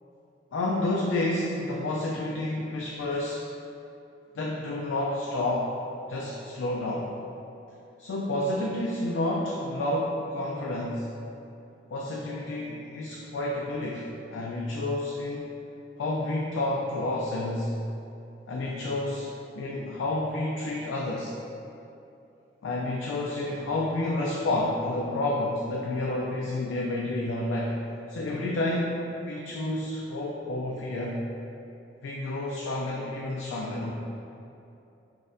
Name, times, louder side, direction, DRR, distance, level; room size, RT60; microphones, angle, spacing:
voice 1, 0.5-3.4 4.3-5.8 6.1-7.1 8.0-11.1 11.9-15.5 16.0-17.7 18.5-21.4 22.6-27.8 28.1-31.2 32.0-33.9, left 1 dB, 85° left, -3 dB, 0.3 m, -30 dB
4.1 x 2.5 x 2.5 m, 2.8 s
head